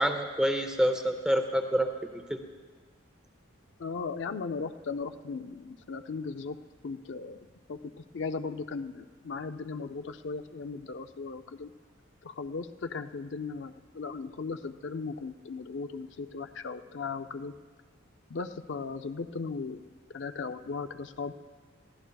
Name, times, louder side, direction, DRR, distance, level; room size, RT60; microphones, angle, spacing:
voice 1, 0.0-1.9 2.3-2.4, equal, 5° right, 6 dB, 0.6 m, -27 dB
voice 2, 3.8-6.6 6.8-11.7 12.2-17.5 18.3-19.8 20.1-21.3, left 4 dB, 60° left, 8 dB, 0.4 m, -37 dB
22.5 x 15.5 x 2.3 m, 1.5 s
head